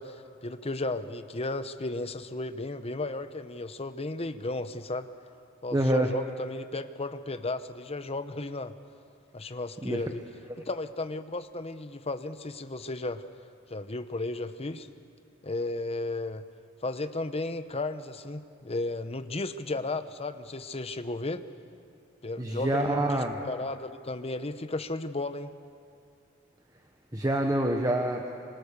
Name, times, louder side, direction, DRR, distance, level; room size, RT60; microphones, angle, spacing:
voice 1, 0.0-5.1 5.6-8.7 9.3-10.2 10.6-13.2 13.7-14.9 15.4-16.4 16.8-21.4 22.2-25.5, left 2 dB, 30° left, 10 dB, 0.9 m, -34 dB
voice 2, 5.7-6.1 9.8-10.0 22.4-23.3 27.1-28.2, right 1 dB, 20° right, 3 dB, 1.2 m, -26 dB
26.5 x 26.0 x 6.8 m, 2.5 s
head